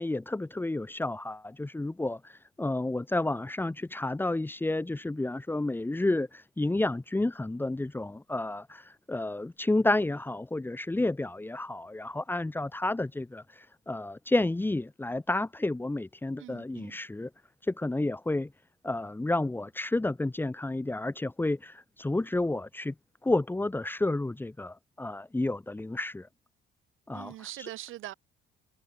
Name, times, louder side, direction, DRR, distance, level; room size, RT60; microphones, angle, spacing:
voice 1, 0.0-17.3 17.7-18.5 18.8-22.9 23.2-26.3 27.1-27.7, left 2 dB, 10° left, 2.8 m, -31 dB
voice 2, 16.4-17.0 27.1-28.1, right 15 dB, 85° right, 3.6 m, -42 dB
cardioid pair, 145°, 20 cm